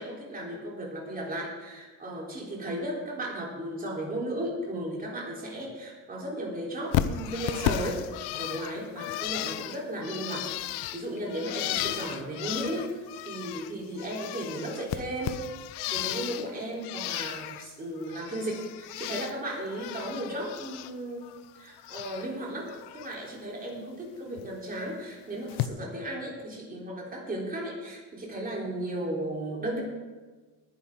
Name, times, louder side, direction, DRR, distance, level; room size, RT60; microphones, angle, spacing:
voice 1, 0.0-8.0 8.4-15.4 15.9-21.3 21.6-29.8, right 1 dB, 20° right, -3 dB, 3.9 m, -35 dB
Bird, 6.9-13.7 14.0-16.5 16.8-17.7 18.0-19.3 19.7-20.9 21.2-22.3 22.7-23.1 24.4-24.5 25.5-25.7, left 13 dB, 80° left, 0.8 m, -34 dB
20.0 x 10.5 x 3.9 m, 1.3 s
cardioid pair, 150°, 39 cm